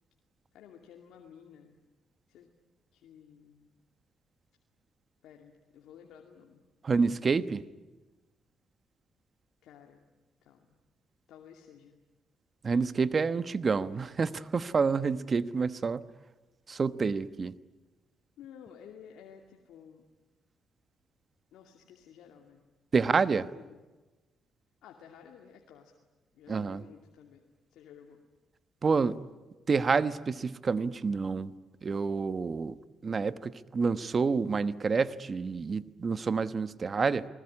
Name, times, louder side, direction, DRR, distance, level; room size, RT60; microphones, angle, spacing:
voice 1, 0.5-1.8 2.3-2.5 2.9-3.7 5.2-6.6 9.6-10.0 10.4-10.8 11.3-12.0 18.4-20.0 21.5-22.6 23.1-23.9 24.8-25.9 26.3-27.4 27.7-28.2, left 8 dB, 85° left, 2 dB, 2.5 m, -53 dB
voice 2, 6.8-7.6 12.6-16.0 16.7-17.5 22.9-23.4 26.5-26.8 28.8-29.2 29.7-31.5 31.8-32.7 33.0-37.3, right 5 dB, 40° right, 14 dB, 1.1 m, -28 dB
29.5 x 20.5 x 9.9 m, 1.2 s
cardioid pair, 90°, 0 cm